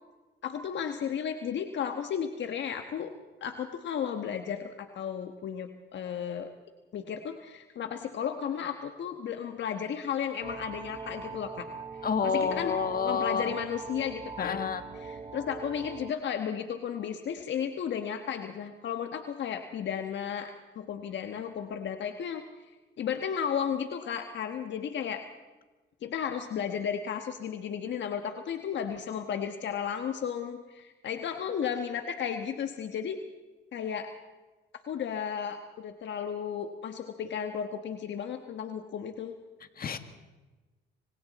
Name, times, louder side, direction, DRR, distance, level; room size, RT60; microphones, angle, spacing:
voice 1, 0.4-3.1 3.4-6.5 6.9-11.7 12.2-12.7 13.0-14.7 15.0-20.5 20.7-22.4 23.0-25.2 26.0-33.2 33.7-34.1 34.9-39.3, left 8 dB, 65° left, 6 dB, 1.4 m, -34 dB
sound 1, 10.4-16.1, right 5 dB, 25° right, 0.8 m, -42 dB
voice 2, 12.0-13.5 14.4-14.8 39.8-40.0, left 6 dB, 50° left, 9 dB, 1.8 m, -29 dB
26.0 x 25.5 x 4.2 m, 1.2 s
cardioid pair, 90°, 20 cm